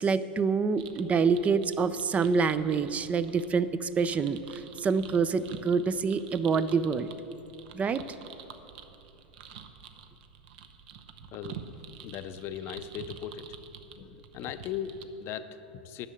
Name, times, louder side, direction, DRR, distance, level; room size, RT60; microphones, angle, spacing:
voice 1, 0.0-4.4 4.8-7.1 7.7-8.0, right 5 dB, 25° right, 14 dB, 0.4 m, -26 dB
sound 1, 0.8-15.0, right 7 dB, 65° right, 0.8 m, -48 dB
voice 2, 11.3-11.6 12.0-13.6 13.9-16.1, left 9 dB, 45° left, 11 dB, 0.6 m, -38 dB
11.0 x 6.3 x 7.9 m, 2.9 s
hypercardioid pair, 95°, 6 cm